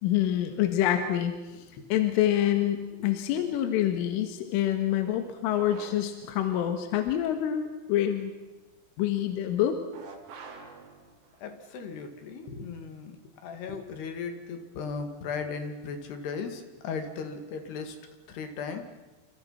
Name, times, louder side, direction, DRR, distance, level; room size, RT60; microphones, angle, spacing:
voice 1, 0.0-1.3 1.9-8.3 9.0-9.8, left 11 dB, 75° left, 6 dB, 4.0 m, -26 dB
voice 2, 1.5-1.8 3.5-3.6 11.4-18.0 18.3-18.8, left 5 dB, 60° left, 7 dB, 3.8 m, -37 dB
sound 1, 5.5-6.3 9.9-11.5, right 4 dB, 75° right, 5.8 m, -47 dB
29.0 x 27.5 x 5.8 m, 1.1 s
omnidirectional pair, 5.9 m